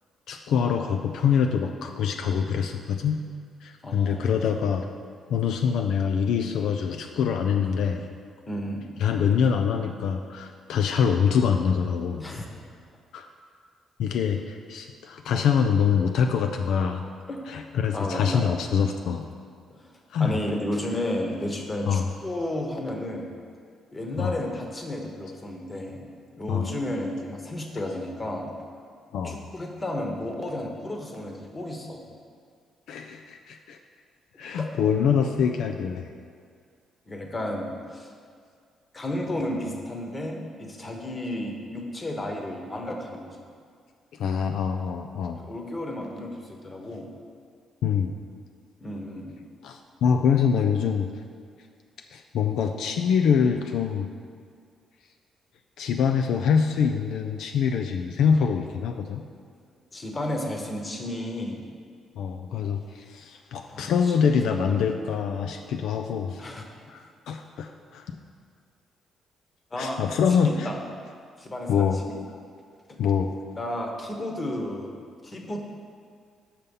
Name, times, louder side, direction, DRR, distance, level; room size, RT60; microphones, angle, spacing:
voice 1, 0.3-3.2 3.6-4.9 5.3-8.0 9.0-12.2 13.1-13.3 14.0-17.1 17.5-19.3 20.1-20.4 21.9-22.1 24.2-24.4 26.5-26.7 29.1-29.5 32.9-33.8 34.4-36.1 44.2-45.4 47.8-48.1 49.6-51.1 52.1-54.1 55.8-59.2 62.2-66.5 66.9-68.0 69.8-70.7 71.7-72.0 73.0-73.3, left 7 dB, 80° left, 4 dB, 0.4 m, -25 dB
voice 2, 3.8-4.5 7.6-7.8 8.5-8.9 12.2-12.4 17.3-17.4 17.9-18.6 19.7-23.3 23.9-26.1 26.4-28.5 29.2-32.0 34.5-34.7 37.1-38.1 38.9-43.4 45.4-47.1 48.8-49.4 59.9-61.6 63.7-64.2 64.4-64.9 65.2-65.4 66.4-66.6 69.7-70.0 70.3-70.8 71.4-72.2 72.9-73.0 73.6-75.6, left 1 dB, 30° left, 2 dB, 1.2 m, -33 dB
6.7 x 5.5 x 5.4 m, 2.1 s
cardioid pair, 90°, 0 cm